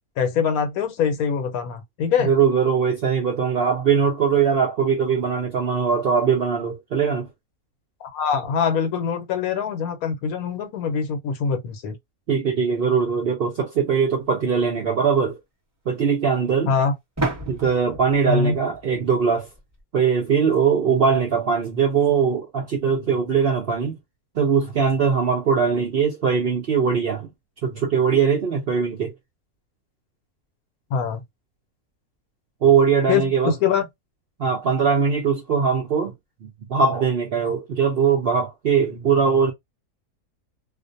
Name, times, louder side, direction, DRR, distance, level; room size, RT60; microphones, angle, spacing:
voice 1, 0.2-2.3 8.0-12.0 16.7-16.9 18.3-18.6 30.9-31.2 33.1-33.8, left 6 dB, 75° left, 1.1 m, -23 dB
voice 2, 2.2-7.3 12.3-15.4 15.9-16.8 17.5-19.5 19.9-23.9 24.3-27.3 27.6-29.1 32.6-33.5 34.4-36.1 36.4-39.5, right 6 dB, 65° right, 0.6 m, -21 dB
sound 1, 14.2-14.3 17.2-19.8, right 2 dB, 15° right, 0.9 m, -32 dB
2.5 x 2.1 x 2.5 m
omnidirectional pair, 1.6 m